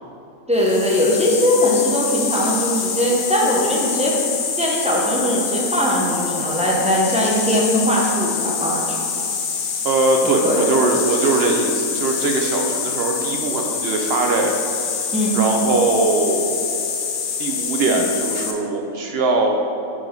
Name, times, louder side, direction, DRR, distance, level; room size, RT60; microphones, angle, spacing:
voice 1, 0.5-4.2 4.6-9.0 10.4-10.7 15.1-15.3 17.9-18.0, equal, 10° right, -4 dB, 0.5 m, -20 dB
sound 1, 0.6-18.5, left 6 dB, 70° left, 1.0 m, -25 dB
voice 2, 9.8-14.5 15.3-16.6 17.4-19.5, right 3 dB, 60° right, 2 dB, 0.6 m, -21 dB
5.5 x 4.1 x 5.1 m, 2.9 s
omnidirectional pair, 1.5 m